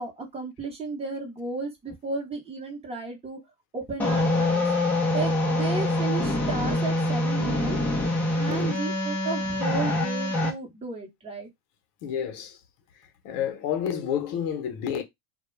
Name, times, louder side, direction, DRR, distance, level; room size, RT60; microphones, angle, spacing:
voice 1, 0.0-3.4 3.7-4.7 5.1-7.8 8.4-11.5, right 3 dB, 15° right, 0.8 m, -34 dB
sound 1, 4.0-10.5, left 1 dB, 5° left, 0.4 m, -25 dB
voice 2, 12.0-12.6 13.2-15.0, left 8 dB, 55° left, 0.8 m, -29 dB
2.2 x 2.1 x 3.1 m
supercardioid pair, 130°, 45 cm